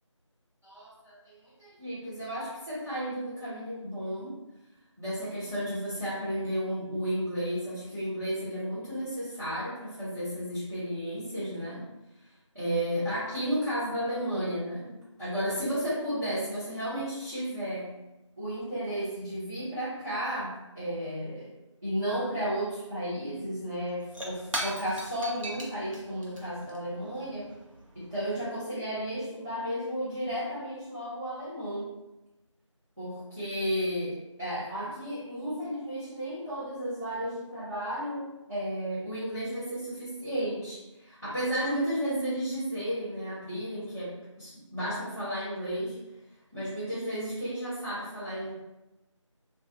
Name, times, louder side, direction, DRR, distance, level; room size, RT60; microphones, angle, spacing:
voice 1, 0.6-4.4 5.0-11.8 12.5-17.9 18.4-21.5 21.8-27.5 27.9-31.9 33.0-46.0 46.5-48.5, equal, 30° right, -17 dB, 1.0 m, -33 dB
Shatter / Crushing, 23.2-23.3 23.5-28.4, right 1 dB, 85° right, 0.8 m, -40 dB
2.4 x 2.3 x 2.7 m, 0.97 s
figure-of-eight pair, 180°, 16 cm